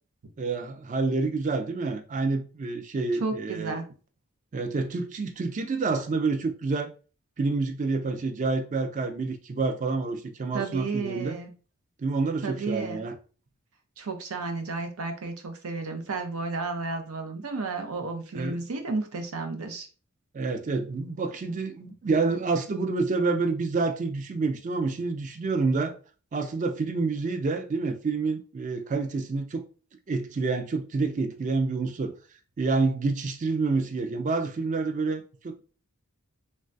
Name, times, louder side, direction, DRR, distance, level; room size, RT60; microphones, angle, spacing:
voice 1, 0.4-3.8 4.5-6.9 7.4-11.4 12.0-13.1 18.3-18.6 20.3-25.9 26.3-29.6 30.1-32.1 32.6-35.6, right 3 dB, 35° right, 0.3 m, -28 dB
voice 2, 3.1-3.8 10.5-11.5 12.4-13.0 14.0-19.9, right 3 dB, 85° right, 0.6 m, -32 dB
3.1 x 2.2 x 2.5 m
head